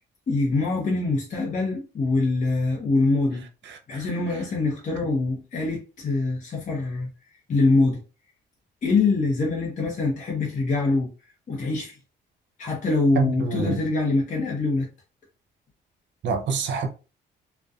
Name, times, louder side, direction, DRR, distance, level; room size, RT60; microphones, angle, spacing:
voice 1, 0.3-3.4 3.9-7.1 7.5-8.0 8.8-11.1 11.5-12.0 12.6-14.9, left 3 dB, 40° left, 0.7 m, -24 dB
voice 2, 3.7-4.1 13.2-13.8 16.2-16.9, right 5 dB, 65° right, 0.6 m, -27 dB
2.5 x 2.1 x 2.4 m
cardioid pair, 90°, 20 cm